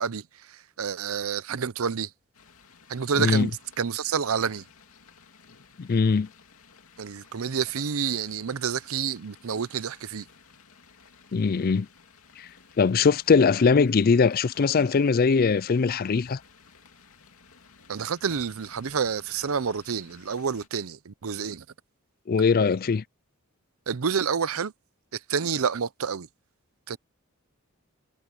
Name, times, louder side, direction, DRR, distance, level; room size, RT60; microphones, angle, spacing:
voice 1, 0.0-2.1 2.9-4.6 7.0-10.3 17.9-21.6 23.9-24.7 25.1-26.3 26.9-27.0, right 6 dB, 70° right, 0.6 m, -29 dB
sound 1, 2.3-20.7, left 5 dB, 70° left, 2.6 m, -55 dB
voice 2, 3.2-3.5 5.8-6.3 11.3-11.9 12.8-16.4 22.3-23.0, left 5 dB, 40° left, 0.4 m, -21 dB
head